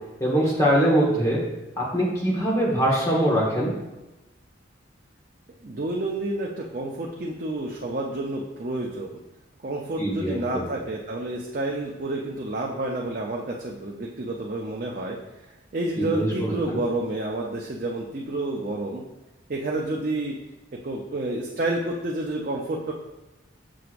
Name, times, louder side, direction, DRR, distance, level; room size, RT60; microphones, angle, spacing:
voice 1, 0.2-1.4 1.8-3.7 10.0-10.6 16.0-16.8, right 1 dB, 15° left, -5 dB, 1.6 m, -23 dB
voice 2, 5.6-9.1 9.6-15.2 15.7-19.0 19.5-20.4 20.8-22.9, right 2 dB, 45° right, -2 dB, 0.6 m, -29 dB
6.9 x 6.2 x 2.5 m, 1.0 s
head